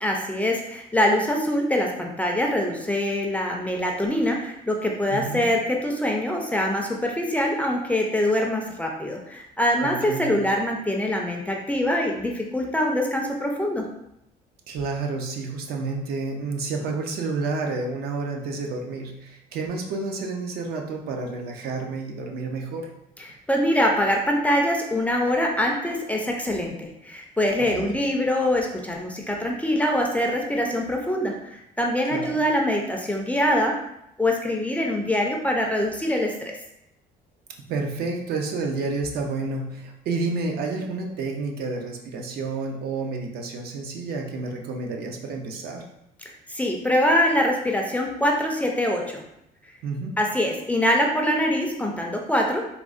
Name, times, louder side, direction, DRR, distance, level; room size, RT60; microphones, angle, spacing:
voice 1, 0.0-13.8 23.2-33.8 34.2-36.5 46.5-49.2 50.2-52.7, left 1 dB, 10° left, 0 dB, 0.4 m, -24 dB
voice 2, 5.1-5.4 9.8-10.4 14.7-22.9 27.7-27.9 32.1-32.4 37.7-45.8 49.8-50.2, right 3 dB, 70° right, 2 dB, 0.5 m, -30 dB
3.6 x 2.0 x 2.4 m, 0.82 s
cardioid pair, 110°, 17 cm